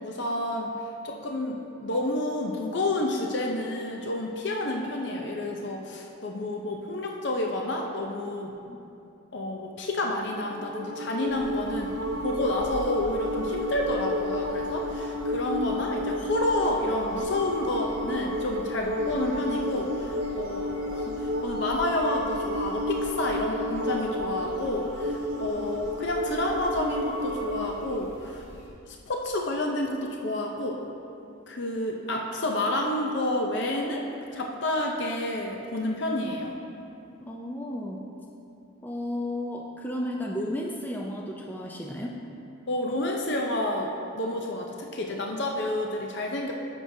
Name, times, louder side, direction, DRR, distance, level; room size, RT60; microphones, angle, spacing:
voice 1, 0.0-0.7 1.0-8.5 9.3-12.0 12.2-28.5 28.9-30.8 31.5-36.6 42.7-46.5, left 1 dB, 55° left, 0 dB, 0.6 m, -29 dB
sound 1, 10.2-27.8, left 1 dB, 65° right, 0.8 m, -32 dB
sound 2, 11.3-28.7, equal, 30° left, 2.0 m, -46 dB
voice 2, 37.2-38.0 38.8-42.2, left 1 dB, 10° left, -1 dB, 0.5 m, -33 dB
14.5 x 6.2 x 2.7 m, 2.7 s
head